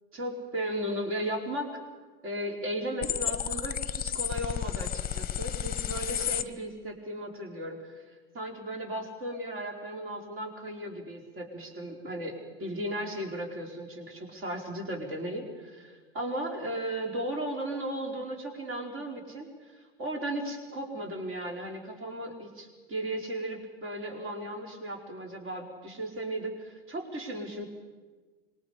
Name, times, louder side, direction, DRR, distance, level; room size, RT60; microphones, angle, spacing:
voice 1, 0.1-1.9 2.2-8.0 8.3-27.7, right 1 dB, 45° right, 2 dB, 4.7 m, -36 dB
sound 1, 3.0-6.4, left 9 dB, 30° left, 0.9 m, -32 dB
26.0 x 22.0 x 5.2 m, 1.4 s
hypercardioid pair, 95°, 32 cm